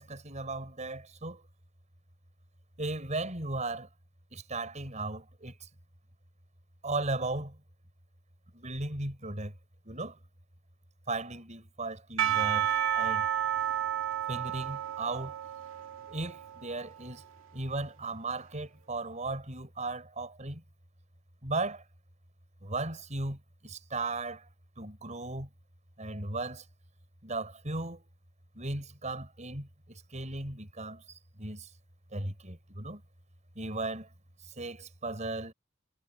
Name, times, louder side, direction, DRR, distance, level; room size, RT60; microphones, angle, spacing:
voice 1, 0.0-1.4 2.8-3.9 4.3-5.7 6.8-7.6 8.5-9.5 9.8-10.2 11.1-12.7 12.9-13.3 14.3-15.4 16.1-17.2 17.5-20.6 21.4-21.8 22.6-24.5 24.8-25.5 26.0-26.6 27.2-28.0 28.5-31.0 31.4-31.7 32.1-33.0 33.5-34.1 34.4-35.5, right 2 dB, 35° right, 5.0 m, -36 dB
Percussion / Church bell, 12.2-17.2, right 10 dB, 80° right, 2.2 m, -31 dB
head